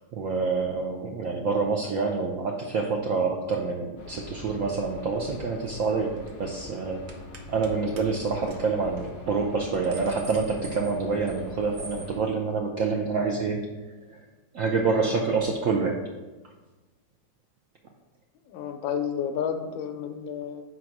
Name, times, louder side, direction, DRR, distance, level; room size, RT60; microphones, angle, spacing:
voice 1, 0.1-7.0 7.5-13.7 14.1-14.2 14.5-16.0, right 4 dB, 85° right, 1 dB, 0.7 m, -27 dB
sound 1, 4.0-12.2, left 2 dB, 55° left, 1.1 m, -43 dB
sound 2, 5.6-5.9 6.2-6.4 7.1-7.7 8.0-8.1 8.4-8.6 9.0-9.1 9.5-11.4 11.7-12.1, right 3 dB, 55° right, 0.8 m, -45 dB
voice 2, 18.5-20.6, left 8 dB, 90° left, 6 dB, 1.4 m, -31 dB
4.8 x 4.2 x 5.9 m, 1.2 s
omnidirectional pair, 2.0 m